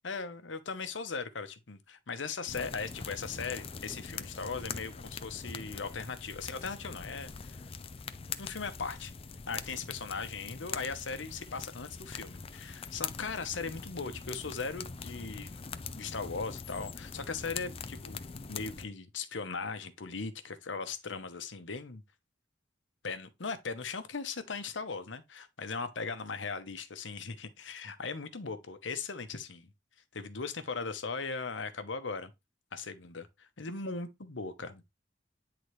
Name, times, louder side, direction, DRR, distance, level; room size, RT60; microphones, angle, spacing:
voice 1, 0.0-7.6 8.4-9.1 9.5-15.5 16.0-22.0 23.0-29.7 30.1-32.3 32.7-34.8, left 4 dB, 85° left, 1.0 m, -38 dB
sound 1, 2.5-18.9, left 5 dB, 30° left, 0.5 m, -43 dB
9.5 x 3.9 x 3.2 m
head